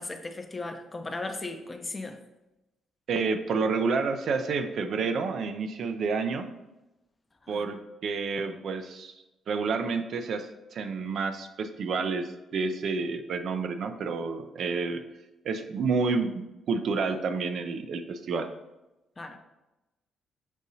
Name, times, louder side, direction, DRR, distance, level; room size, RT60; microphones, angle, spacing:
voice 1, 0.0-2.2 7.5-7.6 19.2-19.4, left 2 dB, 25° left, 6 dB, 0.5 m, -37 dB
voice 2, 3.1-6.5 7.5-9.1 9.5-15.0 15.4-18.5, right 4 dB, 65° right, 8 dB, 0.4 m, -29 dB
6.2 x 2.7 x 2.7 m, 0.99 s
cardioid pair, 90°, 0 cm